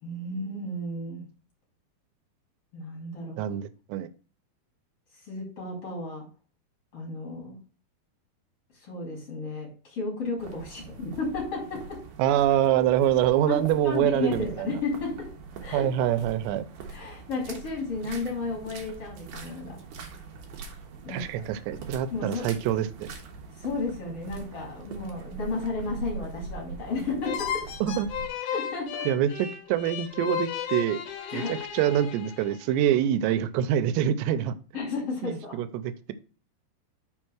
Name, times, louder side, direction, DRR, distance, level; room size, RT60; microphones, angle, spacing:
voice 1, 0.0-1.2 2.7-3.4 5.3-6.2 6.9-7.6 8.8-12.0 13.5-15.3 15.6-15.9 16.9-19.8 21.0-21.4 22.1-22.5 23.6-27.6 28.5-29.1 31.3-31.5 34.7-35.6, left 3 dB, 40° left, -1 dB, 3.1 m, -33 dB
voice 2, 3.4-4.1 12.2-14.7 15.7-16.6 21.1-23.1 27.8-28.1 29.1-31.0 31.3-34.5 35.2-36.1, right 11 dB, 90° right, 13 dB, 2.8 m, -25 dB
sound 1, 10.4-28.3, right 5 dB, 65° right, 2.4 m, -43 dB
sound 2, 27.2-32.7, left 9 dB, 65° left, 2.2 m, -34 dB
6.1 x 4.4 x 6.1 m, 0.37 s
omnidirectional pair, 4.8 m